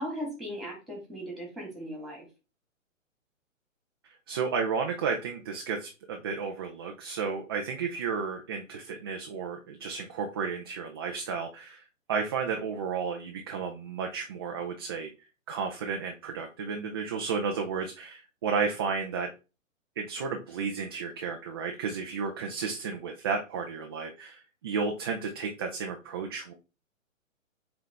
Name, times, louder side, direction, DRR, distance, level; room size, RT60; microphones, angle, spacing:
voice 1, 0.0-2.2, equal, ahead, -1 dB, 3.0 m, -37 dB
voice 2, 4.3-15.1 15.5-19.3 20.0-26.5, right 5 dB, 20° right, 2 dB, 0.4 m, -33 dB
7.3 x 3.9 x 3.3 m, 0.30 s
hypercardioid pair, 135°, 40 cm